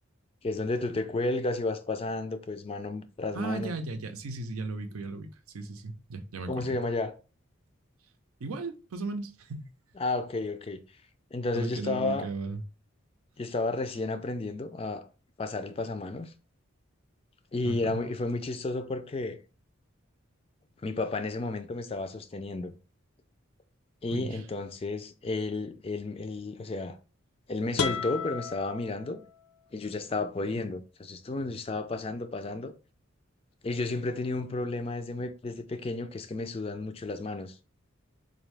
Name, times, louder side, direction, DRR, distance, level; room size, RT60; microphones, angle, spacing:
voice 1, 0.4-3.7 6.5-7.1 10.0-10.8 11.3-12.3 13.4-15.0 15.4-16.3 17.5-19.4 20.8-22.7 24.0-27.0 27.5-29.2 29.7-32.7 33.6-37.6, left 2 dB, 25° left, 0.3 m, -32 dB
voice 2, 3.3-5.3 5.5-6.8 8.4-9.7 11.5-12.6 17.6-18.0 24.1-24.4, right 3 dB, 90° right, 0.6 m, -36 dB
sound 1, 27.8-29.7, left 5 dB, 80° left, 0.5 m, -34 dB
3.8 x 2.7 x 3.2 m
head